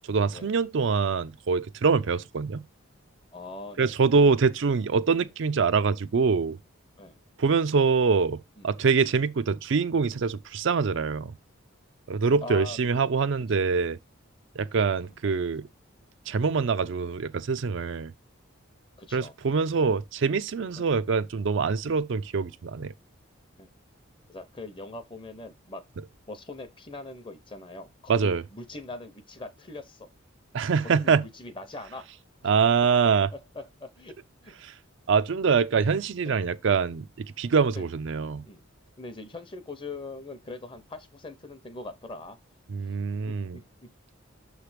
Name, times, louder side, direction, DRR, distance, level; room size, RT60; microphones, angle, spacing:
voice 1, 0.1-2.6 3.8-6.6 7.4-11.3 12.1-14.0 14.6-15.7 16.3-18.1 19.1-22.9 28.1-28.4 30.5-31.2 32.4-33.3 34.6-34.7 35.1-38.4 42.7-43.6, right 5 dB, 60° right, 0.4 m, -24 dB
voice 2, 3.3-3.9 7.0-7.2 8.6-8.7 12.4-13.0 14.9-15.3 19.0-19.3 20.8-20.9 23.6-23.7 24.3-25.8 26.3-30.1 30.8-32.2 33.3-34.2 34.4-34.5 36.2-36.5 37.8-37.9 38.4-38.6 39.0-42.4 43.3-43.9, left 2 dB, 25° left, 0.7 m, -42 dB
6.6 x 3.2 x 4.9 m
head